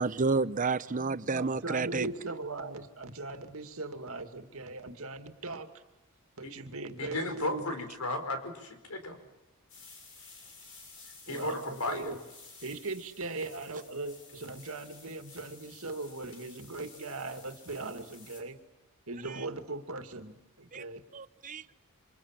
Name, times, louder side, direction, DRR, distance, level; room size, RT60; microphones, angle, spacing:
voice 1, 0.0-2.1 20.7-20.8 21.1-21.6, right 4 dB, 35° right, 14 dB, 0.9 m, -30 dB
voice 2, 1.4-5.8 6.4-7.7 11.3-12.2 12.6-18.6 19.1-21.0, right 3 dB, 70° right, 7 dB, 2.3 m, -39 dB
voice 3, 7.0-9.2 11.3-12.1, left 2 dB, 85° left, 7 dB, 4.7 m, -34 dB
sound 1, 9.7-18.4, left 4 dB, 60° left, 7.1 m, -53 dB
28.0 x 26.0 x 7.5 m, 1.0 s
head